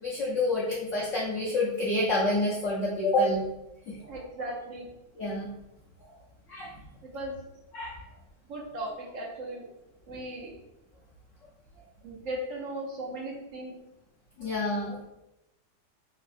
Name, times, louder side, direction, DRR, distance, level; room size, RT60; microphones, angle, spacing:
voice 1, 0.0-3.4 3.9-4.0 5.2-5.5 6.5-6.7 7.7-8.0 14.4-15.0, left 2 dB, 85° left, -5 dB, 0.6 m, -28 dB
voice 2, 4.0-4.9 6.0-6.2 7.0-7.3 8.5-9.6 10.1-10.5 12.0-13.7, right 1 dB, 70° right, -3 dB, 0.8 m, -37 dB
3.4 x 2.1 x 2.4 m, 0.92 s
omnidirectional pair, 1.9 m